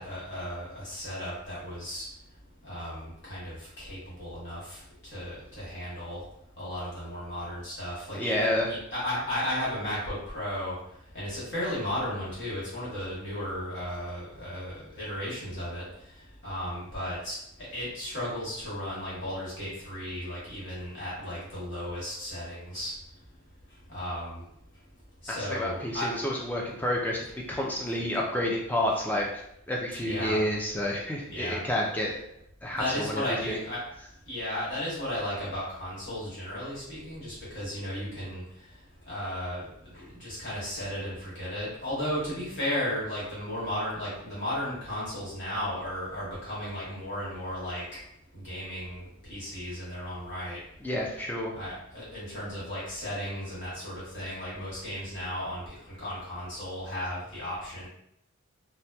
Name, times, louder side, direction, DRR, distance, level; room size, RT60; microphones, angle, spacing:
voice 1, 0.0-2.1 2.6-4.8 5.1-6.2 6.6-10.7 11.1-15.8 16.4-17.4 17.7-22.9 23.9-24.4 25.2-26.1 30.0-30.4 31.3-31.6 32.7-33.8 34.3-38.4 39.1-39.6 39.9-47.8 48.3-49.0 49.3-50.6 51.5-57.9, left 1 dB, 55° left, -9 dB, 1.3 m, -34 dB
voice 2, 8.1-8.7 25.3-29.3 29.7-32.2 32.6-33.6 50.8-51.5, left 1 dB, 10° left, -2 dB, 0.3 m, -29 dB
2.8 x 2.1 x 2.2 m, 0.77 s
head